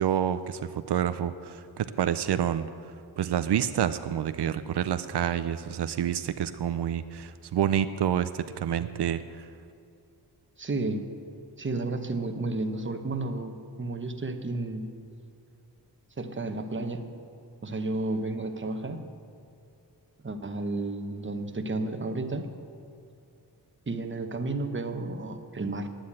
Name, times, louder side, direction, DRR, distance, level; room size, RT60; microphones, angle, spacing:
voice 1, 0.0-2.7 3.2-9.5, right 9 dB, 80° right, 12 dB, 0.5 m, -28 dB
voice 2, 10.6-11.1 11.6-14.9 16.2-17.1 17.6-19.1 20.2-22.5 23.9-25.9, right 2 dB, 30° right, 6 dB, 0.9 m, -32 dB
10.0 x 9.7 x 8.6 m, 2.5 s
wide cardioid pair, 100°, 40 cm